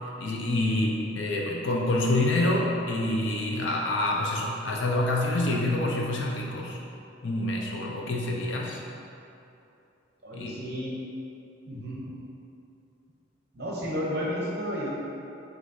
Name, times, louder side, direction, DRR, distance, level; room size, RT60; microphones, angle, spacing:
voice 1, 0.2-6.8 7.2-8.8 10.3-10.6 11.8-11.9, left 1 dB, 70° left, -2 dB, 0.6 m, -27 dB
voice 2, 10.2-10.9 11.7-12.1 13.5-14.9, equal, 55° right, -4 dB, 0.7 m, -32 dB
5.9 x 2.7 x 2.7 m, 2.7 s
head